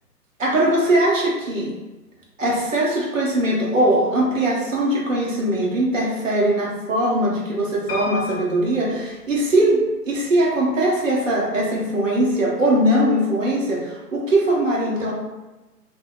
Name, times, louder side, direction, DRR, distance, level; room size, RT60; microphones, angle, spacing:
voice 1, 0.4-1.7 2.4-15.1, right 1 dB, 55° right, -3 dB, 0.8 m, -20 dB
Piano, 7.9-9.9 10.5-11.2 11.5-11.6 11.8-11.9, left 2 dB, 35° left, 0.8 m, -35 dB
2.6 x 2.2 x 2.3 m, 1.1 s
figure-of-eight pair, 145°, 48 cm